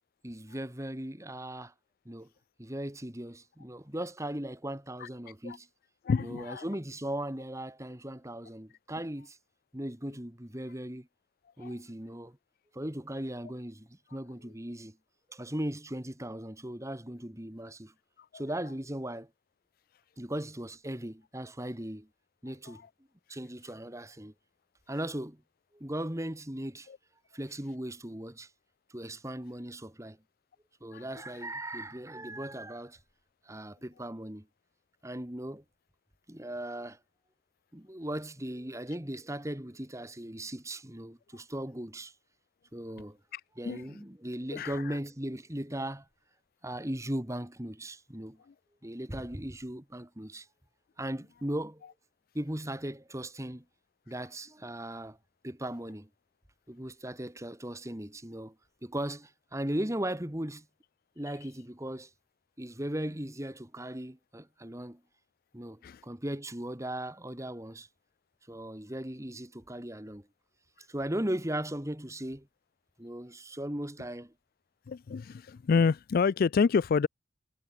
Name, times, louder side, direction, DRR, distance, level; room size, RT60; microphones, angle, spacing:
voice 1, 0.2-1.7 2.1-2.3 2.6-5.7 6.2-9.4 9.7-11.1 11.6-12.4 12.7-15.0 15.3-17.9 18.3-19.3 20.2-22.1 22.4-22.8 23.3-24.3 24.9-25.4 25.7-26.9 27.3-28.5 28.9-30.2 30.8-33.0 33.5-34.5 35.0-35.6 36.3-37.0 37.7-42.1 42.7-43.2 43.6-46.1 46.6-48.4 48.8-50.5 51.0-51.8 52.3-53.6 54.1-55.2 55.4-56.1 56.7-58.5 58.8-60.7 61.2-62.1 62.6-65.0 65.5-67.9 68.5-70.3 70.9-72.5 73.0-74.3, right 1 dB, 15° right, 2.1 m, -38 dB
voice 2, 6.0-6.6 11.6-11.7 22.7-22.8 26.9-27.0 30.9-31.0 43.3-43.8 44.5-45.0 65.8-66.0 74.9-77.1, left 5 dB, 45° left, 0.3 m, -28 dB
head